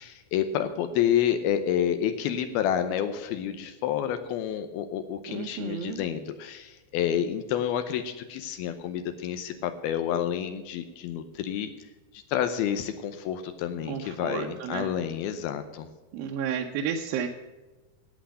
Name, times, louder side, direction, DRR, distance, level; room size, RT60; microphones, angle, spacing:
voice 1, 0.0-11.7 12.1-15.9, left 9 dB, 80° left, 8 dB, 2.6 m, -29 dB
voice 2, 5.3-6.0 13.9-14.9 16.1-17.3, right 7 dB, 75° right, 1 dB, 2.4 m, -32 dB
11.5 x 8.4 x 6.3 m, 1.2 s
omnidirectional pair, 4.5 m